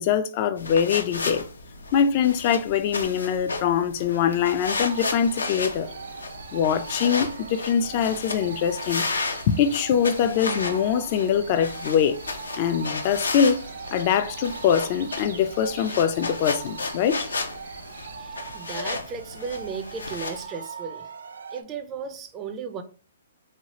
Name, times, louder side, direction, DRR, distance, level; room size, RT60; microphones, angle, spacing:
voice 1, 0.0-1.4 1.9-5.9 6.5-9.0 9.5-12.2 12.6-13.6 13.9-17.2, left 8 dB, 40° left, 0.4 m, -23 dB
sound 1, 0.6-20.4, left 3 dB, 90° left, 0.6 m, -34 dB
sound 2, 4.6-18.2, right 4 dB, 65° right, 0.8 m, -47 dB
sound 3, 4.6-21.6, right 5 dB, 85° right, 0.4 m, -42 dB
voice 2, 18.2-21.1 21.5-22.8, right 6 dB, 25° right, 0.4 m, -35 dB
3.2 x 2.4 x 2.8 m
hypercardioid pair, 135°, 0 cm